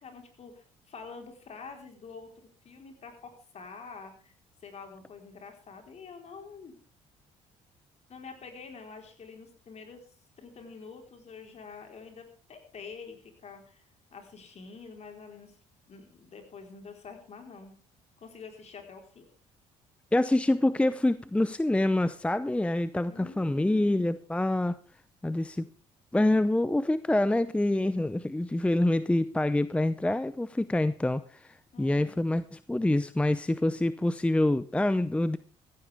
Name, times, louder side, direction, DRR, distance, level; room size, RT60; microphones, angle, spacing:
voice 1, 0.0-2.3 2.6-4.3 4.6-6.7 8.1-10.0 10.4-13.8 14.1-15.6 15.9-17.7 18.2-19.3 23.1-24.0 31.7-32.1, left 5 dB, 50° left, 4 dB, 4.4 m, -47 dB
voice 2, 20.1-24.8 25.2-25.7 26.1-35.4, left 1 dB, 10° left, 14 dB, 0.7 m, -26 dB
15.5 x 15.0 x 3.6 m, 0.39 s
supercardioid pair, 70°, 14 cm